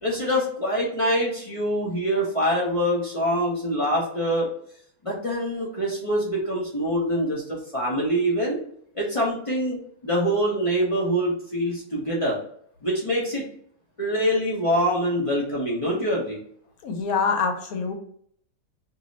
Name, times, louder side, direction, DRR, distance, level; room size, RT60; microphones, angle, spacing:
voice 1, 0.0-4.5 5.0-8.6 8.9-9.8 10.0-12.4 12.8-13.4 14.0-16.4, equal, 40° left, -4 dB, 0.5 m, -24 dB
voice 2, 16.8-17.9, left 5 dB, 80° left, 5 dB, 1.1 m, -25 dB
2.7 x 2.0 x 3.8 m, 0.63 s
omnidirectional pair, 1.5 m